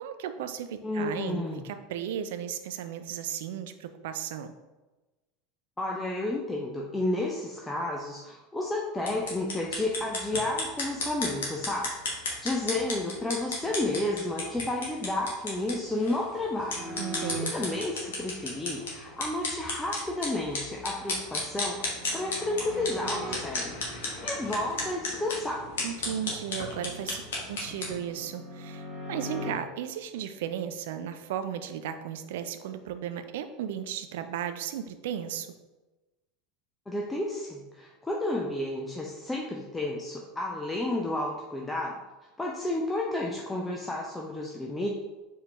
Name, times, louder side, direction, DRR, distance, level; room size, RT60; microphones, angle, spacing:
voice 1, 0.0-4.5 17.0-17.5 25.8-27.2 27.5-35.5, right 9 dB, 60° right, 9 dB, 0.4 m, -35 dB
voice 2, 0.8-1.7 5.8-11.9 12.2-16.8 17.2-25.6 36.9-42.0 42.4-44.9, left 2 dB, 10° left, -1 dB, 0.6 m, -31 dB
sound 1, 9.0-27.9, left 2 dB, 65° left, 1.2 m, -35 dB
sound 2, 16.7-17.4 20.8-23.4 26.5-29.5, equal, 15° right, 1.4 m, -41 dB
4.6 x 3.4 x 3.2 m, 1.1 s
figure-of-eight pair, 80°, 0 cm